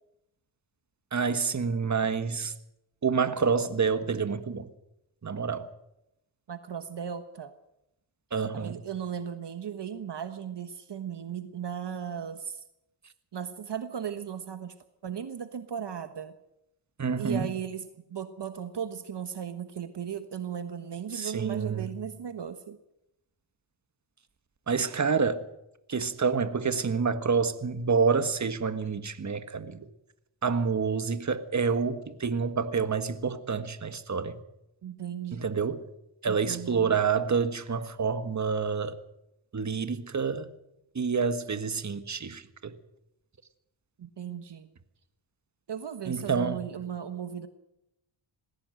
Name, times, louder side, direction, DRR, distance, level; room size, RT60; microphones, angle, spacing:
voice 1, 1.1-2.5 3.0-4.7 5.2-5.7 8.3-8.8 17.0-17.5 21.1-21.9 24.7-25.4 25.9-29.9 30.4-34.4 35.3-35.8 36.2-39.0 39.5-40.5 40.9-42.7 46.1-46.6, right 5 dB, 35° right, 1.7 m, -28 dB
voice 2, 6.5-7.5 8.5-12.6 13.3-14.7 15.0-16.3 17.2-22.8 34.8-35.5 36.2-37.0 44.0-44.7 45.7-47.5, right 8 dB, 55° right, 1.4 m, -36 dB
20.0 x 16.5 x 7.9 m
cardioid pair, 80°, 49 cm